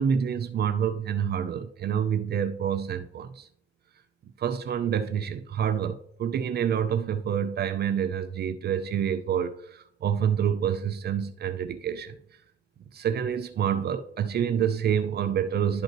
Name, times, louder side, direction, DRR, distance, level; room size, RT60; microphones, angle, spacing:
voice 1, 0.0-3.5 4.4-12.2 12.9-15.8, right 8 dB, 55° right, 0.6 m, -27 dB
11.5 x 5.3 x 3.0 m
cardioid pair, 90°, 20 cm